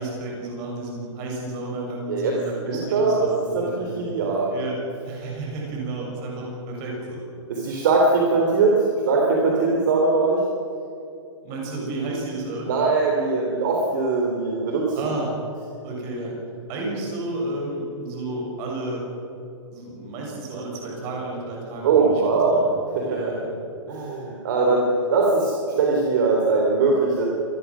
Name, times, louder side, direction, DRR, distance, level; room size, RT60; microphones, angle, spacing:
voice 1, 0.0-4.1 4.5-4.8 5.0-7.2 11.4-12.7 14.9-15.3 15.8-16.4 16.7-19.0 19.7-22.7 23.1-23.5, right 2 dB, 20° right, -2 dB, 6.6 m, -32 dB
voice 2, 2.7-4.6 7.5-10.4 12.7-15.1 21.8-22.7 23.0-23.2 23.9-27.3, right 3 dB, 40° right, -1 dB, 3.5 m, -21 dB
27.0 x 20.0 x 6.2 m, 2.8 s
hypercardioid pair, 175°, 16 cm